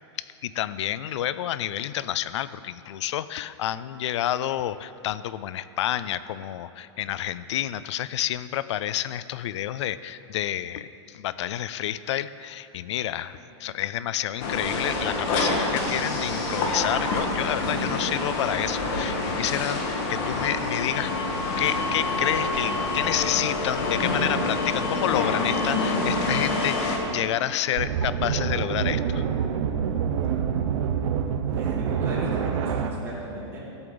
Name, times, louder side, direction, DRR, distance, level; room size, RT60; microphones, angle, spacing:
voice 1, 0.2-21.1 21.6-29.2, left 12 dB, 70° left, 15 dB, 0.4 m, -29 dB
sound 1, 14.4-27.0, left 2 dB, 45° left, 1.6 m, -27 dB
sound 2, 27.8-32.9, right 7 dB, 70° right, 0.7 m, -26 dB
voice 2, 31.5-33.6, right 1 dB, 15° right, -7 dB, 2.3 m, -36 dB
13.5 x 7.9 x 3.9 m, 2.7 s
supercardioid pair, 150°, 15 cm